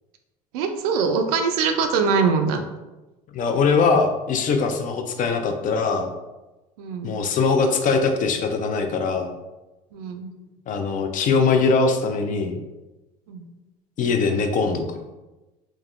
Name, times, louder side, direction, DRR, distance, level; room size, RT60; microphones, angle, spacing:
voice 1, 0.5-2.6 6.8-7.2 9.9-10.3 13.3-13.5, right 5 dB, 80° right, 5 dB, 0.4 m, -23 dB
voice 2, 3.3-6.1 7.0-9.3 10.7-12.6 14.0-14.8, left 4 dB, 45° left, 6 dB, 0.4 m, -21 dB
3.4 x 2.0 x 2.4 m, 1.1 s
hypercardioid pair, 75°, 19 cm